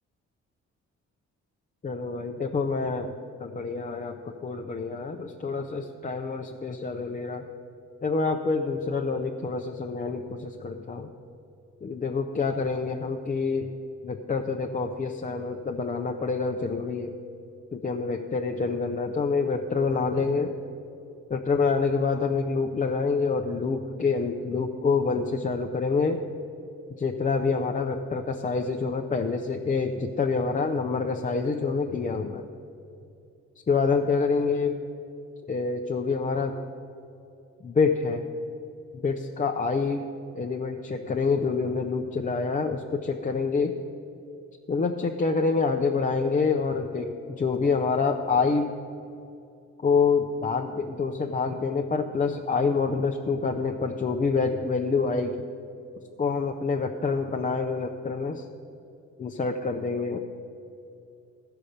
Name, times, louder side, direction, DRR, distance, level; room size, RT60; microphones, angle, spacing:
voice 1, 1.8-3.1 3.4-7.4 8.0-11.1 11.8-13.7 14.0-17.2 17.7-20.6 21.3-26.2 27.0-32.5 33.7-34.8 35.5-36.6 37.6-38.3 39.0-40.0 40.3-43.8 44.7-48.7 49.8-55.3 56.2-58.5 59.2-60.2, left 4 dB, 25° left, 3 dB, 0.6 m, -27 dB
13.5 x 5.6 x 6.5 m, 2.6 s
cardioid pair, 90°, 30 cm